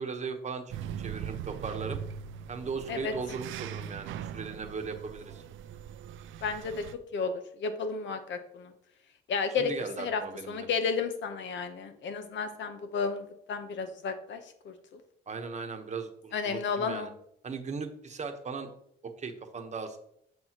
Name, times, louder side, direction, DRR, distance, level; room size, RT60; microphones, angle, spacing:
voice 1, 0.0-2.0 2.5-5.4 9.6-10.7 15.3-17.1 17.4-18.7 19.2-20.0, right 5 dB, 35° right, 5 dB, 1.1 m, -38 dB
sound 1, 0.7-6.9, right 9 dB, 80° right, 0.4 m, -40 dB
voice 2, 6.4-6.8 7.1-7.3 7.6-8.7 9.3-9.7 10.0-10.2 10.5-15.0 16.3-17.1, left 5 dB, 70° left, 8 dB, 1.0 m, -32 dB
7.7 x 5.5 x 2.9 m, 0.71 s
cardioid pair, 90°, 20 cm